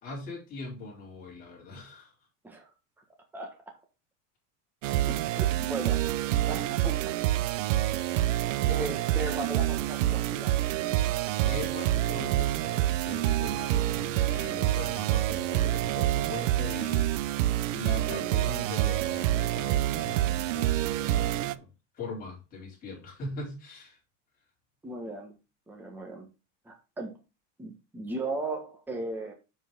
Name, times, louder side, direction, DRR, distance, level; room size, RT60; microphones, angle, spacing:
voice 1, 0.0-2.1 5.0-5.1 11.4-24.0, left 3 dB, 25° left, 4.3 m, -41 dB
sound 1, 4.8-21.5, right 14 dB, 80° right, 0.7 m, -27 dB
voice 2, 5.1-6.1 6.5-7.2 8.7-10.6 18.2-18.5 24.8-25.4 25.7-26.3 26.6-27.2 27.6-29.3, right 2 dB, 5° right, 1.4 m, -37 dB
7.5 x 6.9 x 3.7 m
supercardioid pair, 170°, 38 cm